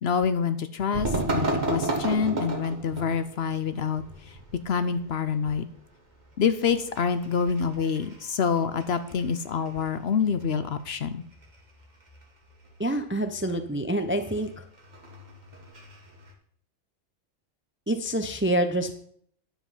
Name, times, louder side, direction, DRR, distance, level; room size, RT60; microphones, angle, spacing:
voice 1, 0.0-4.4 4.7-5.7 6.4-11.2, left 6 dB, 60° left, 11 dB, 0.9 m, -27 dB
sound 1, 0.9-16.3, right 2 dB, 35° right, 1.8 m, -35 dB
voice 2, 12.8-14.6 17.9-18.9, right 1 dB, 15° right, 7 dB, 0.5 m, -27 dB
10.0 x 7.2 x 5.6 m, 0.64 s
omnidirectional pair, 1.3 m